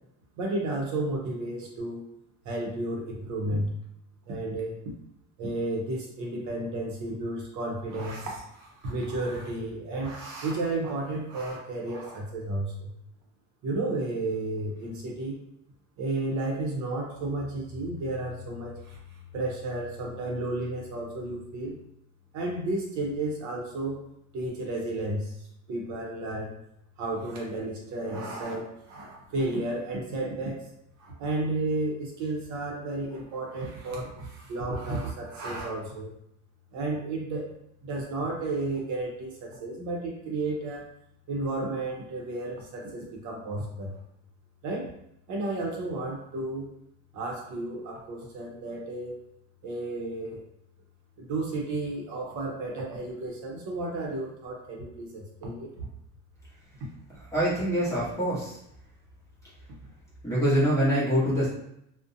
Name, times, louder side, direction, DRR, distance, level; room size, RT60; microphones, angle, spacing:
voice 1, 0.4-2.1 2.4-3.7 4.3-4.8 5.4-12.9 13.6-15.4 16.0-21.8 22.3-24.0 24.3-26.6 27.0-30.7 31.0-36.1 36.7-37.5 37.8-40.9 41.3-43.9 44.6-44.9 45.3-46.7 47.1-49.2 49.6-50.4 51.2-55.9 59.8-59.9, right 2 dB, 60° right, -1 dB, 0.7 m, -32 dB
voice 2, 57.3-58.6 60.2-61.5, equal, 10° left, -9 dB, 0.9 m, -24 dB
2.5 x 2.1 x 2.5 m, 0.77 s
cardioid pair, 155°, 33 cm